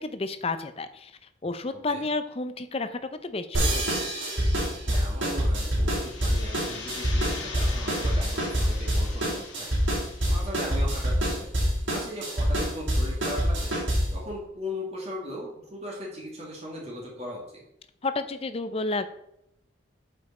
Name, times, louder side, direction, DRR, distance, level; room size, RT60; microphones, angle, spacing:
voice 1, 0.0-1.1 1.4-4.0 18.0-19.1, left 3 dB, 30° left, 11 dB, 0.6 m, -31 dB
voice 2, 1.7-2.0 4.9-9.7 10.3-13.8 14.1-17.6, equal, 35° right, -3 dB, 2.1 m, -38 dB
sound 1, 3.5-14.2, equal, 90° right, 3.4 m, -26 dB
sound 2, 5.7-11.4, left 4 dB, 90° left, 1.7 m, -42 dB
8.0 x 5.5 x 4.2 m, 0.78 s
head